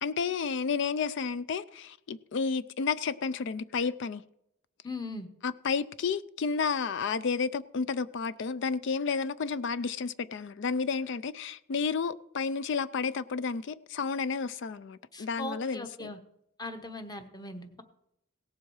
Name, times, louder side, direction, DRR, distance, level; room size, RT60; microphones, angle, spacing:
voice 1, 0.0-4.2 5.4-16.1, left 5 dB, 60° left, 0.4 m, -31 dB
voice 2, 4.8-5.3 15.1-16.2 16.6-17.8, left 2 dB, 20° left, 1.0 m, -39 dB
17.0 x 7.4 x 4.7 m
head